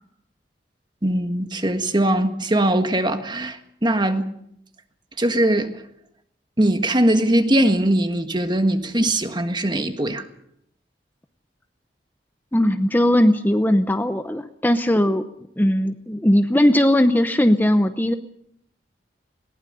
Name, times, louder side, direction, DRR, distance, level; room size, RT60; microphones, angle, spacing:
voice 1, 1.0-4.3 5.2-5.8 6.6-10.2, right 1 dB, 25° right, 1.6 m, -21 dB
voice 2, 12.5-15.2 15.6-18.1, left 1 dB, 10° left, 0.8 m, -18 dB
21.0 x 19.0 x 6.9 m
head